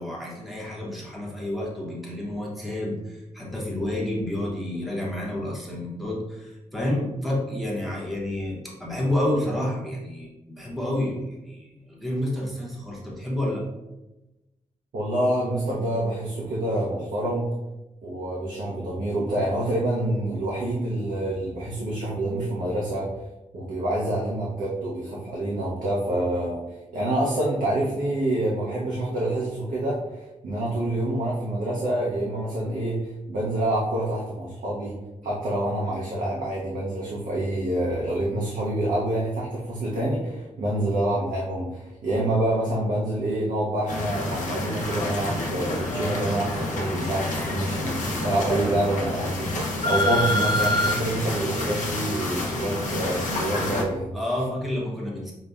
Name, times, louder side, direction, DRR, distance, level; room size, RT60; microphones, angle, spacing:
voice 1, 0.0-13.6 54.1-55.3, left 1 dB, ahead, -4 dB, 0.7 m, -29 dB
voice 2, 14.9-17.5 18.0-23.1 23.5-26.6 26.9-34.9 35.2-54.1, right 1 dB, 80° right, -5 dB, 0.6 m, -27 dB
sound 1, 43.9-53.8, left 1 dB, 70° left, 0.6 m, -28 dB
5.3 x 2.1 x 2.3 m, 1.0 s
wide cardioid pair, 175°, 13 cm